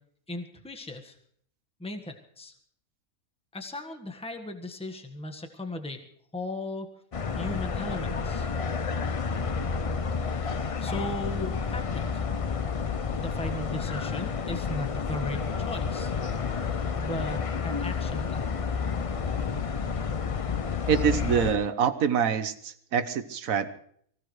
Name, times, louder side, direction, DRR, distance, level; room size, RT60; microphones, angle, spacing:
voice 1, 0.3-1.2 1.8-2.5 3.5-6.0 6.3-6.9 7.4-8.5 10.8-12.2 13.1-16.1 17.0-18.4, left 1 dB, 5° left, 5 dB, 1.4 m, -37 dB
sound 1, 7.1-21.5, left 5 dB, 50° left, 0.4 m, -30 dB
voice 2, 20.9-23.7, right 7 dB, 70° right, 11 dB, 1.4 m, -25 dB
24.0 x 16.0 x 3.2 m, 0.62 s
omnidirectional pair, 1.5 m